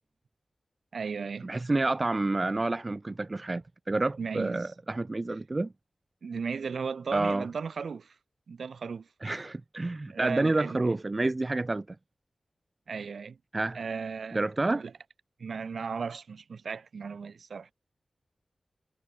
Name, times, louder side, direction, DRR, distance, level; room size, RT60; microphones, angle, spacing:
voice 1, 0.9-1.5 4.2-4.7 6.2-8.1 8.5-9.1 10.1-10.8 12.9-13.4 13.7-14.4 14.8-14.9 15.4-17.7, right 5 dB, 80° right, 2.6 m, -36 dB
voice 2, 1.4-5.7 7.1-7.5 9.2-11.8 13.5-13.8 14.3-14.8, right 2 dB, 35° right, 1.0 m, -29 dB
cardioid pair, 55°, 0 cm